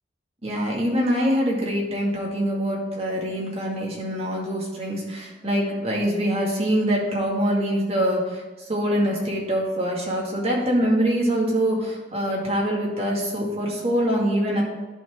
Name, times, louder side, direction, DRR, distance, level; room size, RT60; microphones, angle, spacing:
voice 1, 0.4-8.4 8.7-14.6, equal, 35° right, -3 dB, 2.0 m, -24 dB
11.0 x 4.3 x 5.0 m, 1.3 s
head